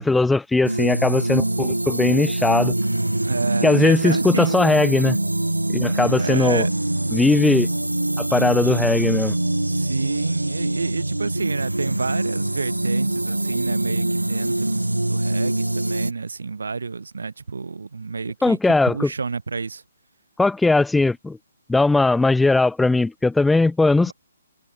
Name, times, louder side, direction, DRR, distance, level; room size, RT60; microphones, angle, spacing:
voice 1, 0.0-2.7 3.6-5.2 5.7-6.6 7.1-7.7 8.2-9.3 18.4-19.1 20.4-21.4 21.7-24.1, left 3 dB, 5° left, 1.2 m, -19 dB
sound 1, 0.6-16.1, right 1 dB, 90° right, 1.0 m, -24 dB
voice 2, 3.2-4.6 6.2-6.7 9.7-18.6 18.9-19.8, right 4 dB, 70° right, 4.4 m, -29 dB
figure-of-eight pair, 135°, 0 cm